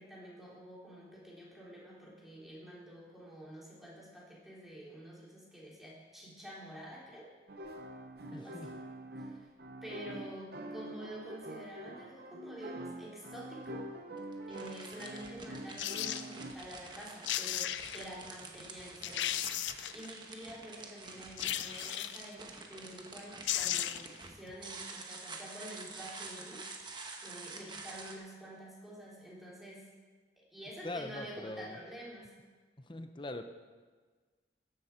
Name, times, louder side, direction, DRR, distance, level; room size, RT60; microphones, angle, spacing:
voice 1, 0.0-7.3 8.3-8.7 9.2-9.4 9.8-13.9 14.5-26.6 27.2-29.9 30.5-32.3, equal, ahead, -6 dB, 3.3 m, -48 dB
sound 1, 7.5-16.5, right 1 dB, 60° right, 0.8 m, -45 dB
voice 2, 8.3-8.7 30.8-31.8 32.8-33.4, left 2 dB, 25° left, 8 dB, 0.8 m, -42 dB
sound 2, 14.2-28.2, right 3 dB, 25° right, 1.2 m, -48 dB
sound 3, 15.8-16.3 17.0-17.1 17.3-18.1 18.6-18.7 19.0-20.1 21.4-22.3 23.1-23.2 23.4-24.2 24.5-24.6, left 12 dB, 85° left, 0.5 m, -35 dB
14.0 x 10.5 x 4.5 m, 1.4 s
head